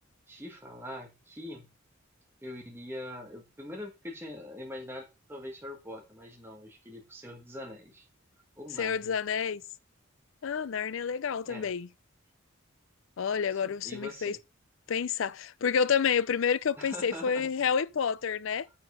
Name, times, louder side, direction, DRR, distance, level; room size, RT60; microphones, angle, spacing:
voice 1, 0.3-1.7 2.4-8.1 8.6-9.2 11.5-11.7 13.5-14.4 16.8-17.7 18.5-18.7, left 1 dB, 10° right, 1.6 m, -43 dB
voice 2, 8.8-9.6 10.4-11.9 13.2-14.4 14.9-18.7, left 6 dB, 70° left, 0.4 m, -29 dB
7.8 x 7.1 x 5.0 m
head